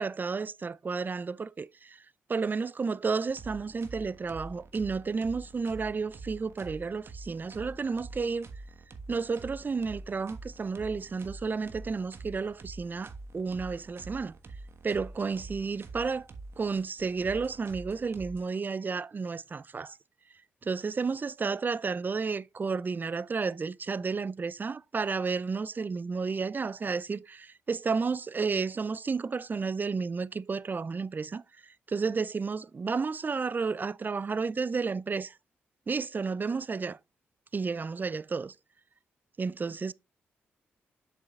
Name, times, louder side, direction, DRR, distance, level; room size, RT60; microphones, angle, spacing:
voice 1, 0.0-2.0 2.3-8.5 9.1-14.3 14.8-16.3 16.6-20.0 20.6-31.4 31.9-35.3 35.9-37.0 37.5-38.5 39.4-39.9, right 4 dB, 35° right, 0.4 m, -32 dB
sound 1, 3.3-18.4, right 3 dB, 50° right, 1.4 m, -46 dB
7.8 x 6.6 x 2.4 m
hypercardioid pair, 40°, 5 cm